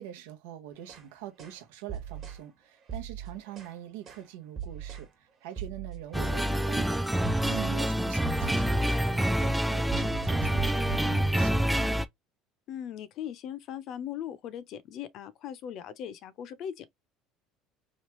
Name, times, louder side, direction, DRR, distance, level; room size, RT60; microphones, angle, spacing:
voice 1, 0.0-12.0, right 12 dB, 85° right, 0.8 m, -44 dB
sound 1, 0.8-1.1 1.4-1.6 1.9-2.4 2.8-3.7 4.1-4.3 4.6-5.1 5.5-6.4 6.7-6.9 7.2-7.8 8.0-9.1 9.4-9.6 9.9-11.4, right 8 dB, 45° right, 1.2 m, -40 dB
sound 2, 6.1-12.1, equal, 5° right, 0.3 m, -27 dB
voice 2, 12.7-16.9, left 9 dB, 60° left, 0.5 m, -39 dB
3.1 x 2.3 x 3.0 m
supercardioid pair, 95°, 0 cm